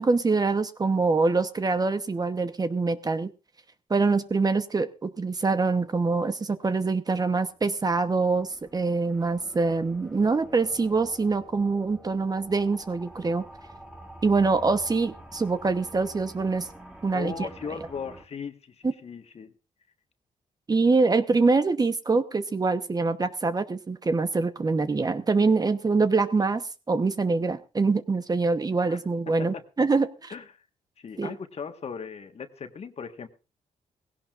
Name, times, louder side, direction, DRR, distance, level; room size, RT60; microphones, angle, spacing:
voice 1, 0.0-3.3 3.9-8.5 8.7-13.4 14.2-16.7 17.0-17.5 20.7-30.3 31.2-31.3, right 4 dB, 30° right, 10 dB, 1.0 m, -24 dB
sound 1, 7.6-18.2, right 1 dB, 5° right, 2.3 m, -47 dB
voice 2, 17.1-19.5 28.9-29.0 29.4-29.6 30.3-30.6 31.0-33.3, left 6 dB, 50° left, 7 dB, 1.5 m, -38 dB
18.5 x 16.5 x 2.5 m, 0.32 s
cardioid pair, 90°, 14 cm